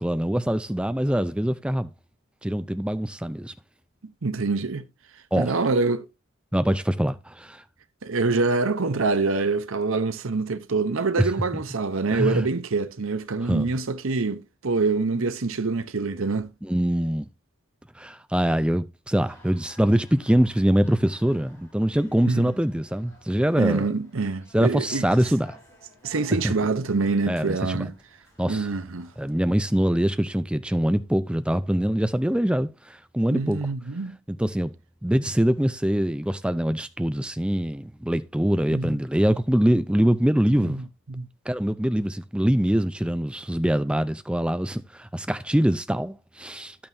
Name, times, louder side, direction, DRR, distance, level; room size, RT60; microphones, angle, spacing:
voice 1, 0.0-1.9 2.4-3.5 5.3-5.5 6.5-7.6 12.1-12.4 13.5-13.7 16.6-17.3 18.0-23.9 24.5-25.6 27.3-27.9 28.4-28.7 29.2-33.6 34.3-34.7 35.0-40.8 41.5-46.8, equal, 5° right, 0.4 m, -24 dB
voice 2, 4.0-4.9 5.4-6.1 8.0-16.5 22.2-22.5 23.6-25.1 26.0-27.9 28.5-29.1 33.3-34.2 38.7-39.0 40.6-41.3, right 3 dB, 65° right, 0.8 m, -25 dB
girls voice, 19.3-29.3, left 1 dB, 15° left, 5.3 m, -54 dB
11.0 x 8.7 x 2.7 m
head